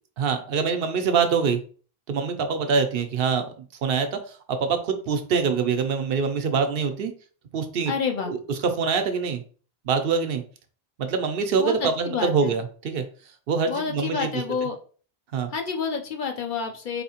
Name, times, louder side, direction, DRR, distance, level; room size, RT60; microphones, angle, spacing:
voice 1, 0.2-1.6 2.1-3.5 3.8-7.1 7.5-7.9 8.3-8.4 8.8-9.4 9.8-10.4 11.0-13.0 13.5-14.3 15.3-15.5, right 5 dB, 70° right, 7 dB, 0.7 m, -24 dB
voice 2, 7.9-8.3 11.6-12.6 13.7-14.8 15.5-17.0, left 5 dB, 60° left, 3 dB, 0.7 m, -29 dB
4.1 x 2.7 x 2.8 m, 0.41 s
omnidirectional pair, 1.1 m